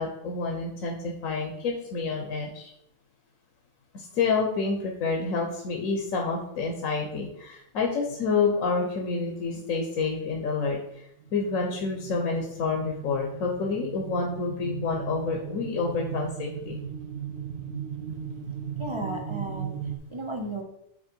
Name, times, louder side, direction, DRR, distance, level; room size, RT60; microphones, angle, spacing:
voice 1, 0.0-2.7 3.9-10.8 11.3-16.8, left 4 dB, 80° left, 1 dB, 1.3 m, -28 dB
sound 1, 11.2-20.0, right 7 dB, 90° right, 1.1 m, -37 dB
voice 2, 18.7-20.6, right 2 dB, 30° right, 2 dB, 0.7 m, -35 dB
8.5 x 3.1 x 4.5 m, 0.77 s
omnidirectional pair, 1.4 m